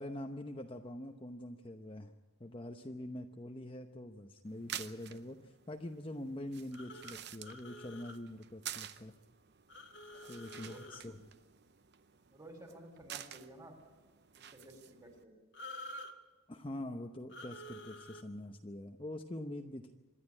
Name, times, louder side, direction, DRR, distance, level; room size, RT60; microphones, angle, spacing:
voice 1, 0.0-2.1 2.4-9.1 10.3-11.2 16.5-19.9, left 1 dB, 25° left, 4 dB, 0.9 m, -44 dB
sound 1, 4.5-15.2, right 10 dB, 50° right, 0.7 m, -50 dB
sound 2, 6.7-8.2 9.7-11.1 15.5-16.1 17.3-18.2, left 1 dB, 60° left, 1.6 m, -49 dB
voice 2, 10.5-11.2 12.3-13.7 14.5-15.3, right 1 dB, 20° right, 4 dB, 3.6 m, -54 dB
26.5 x 11.0 x 9.9 m, 1.2 s
head